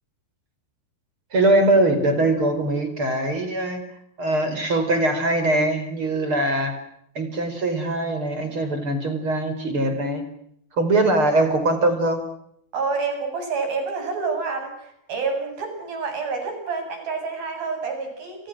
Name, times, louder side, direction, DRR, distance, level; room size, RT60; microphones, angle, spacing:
voice 1, 1.3-3.8 4.2-6.8 7.2-10.3 10.7-12.2, right 2 dB, 35° right, 8 dB, 5.4 m, -22 dB
voice 2, 12.7-18.5, right 4 dB, 70° right, 5 dB, 9.9 m, -28 dB
30.0 x 29.5 x 6.3 m, 0.72 s
omnidirectional pair, 4.4 m